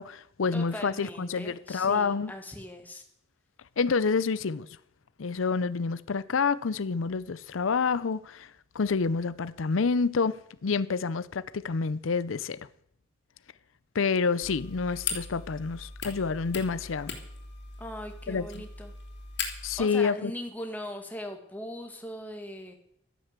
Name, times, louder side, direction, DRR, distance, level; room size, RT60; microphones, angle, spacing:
voice 1, 0.0-2.3 3.8-4.7 5.2-12.7 13.9-17.1 18.3-18.6 19.6-20.3, left 5 dB, 85° left, 0.6 m, -28 dB
voice 2, 0.5-3.0 17.8-18.9 19.8-22.7, left 1 dB, 10° left, 1.8 m, -40 dB
sound 1, 14.4-19.8, left 5 dB, 60° left, 3.0 m, -39 dB
13.0 x 10.5 x 8.1 m
head